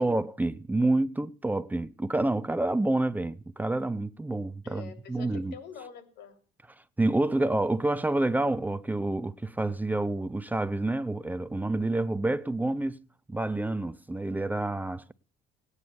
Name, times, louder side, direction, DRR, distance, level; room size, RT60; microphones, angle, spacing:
voice 1, 0.0-5.6 7.0-13.0 13.3-15.1, right 2 dB, 10° right, 0.6 m, -28 dB
voice 2, 4.6-6.3, left 7 dB, 85° left, 3.4 m, -46 dB
17.5 x 9.7 x 6.9 m
cardioid pair, 110°, 17 cm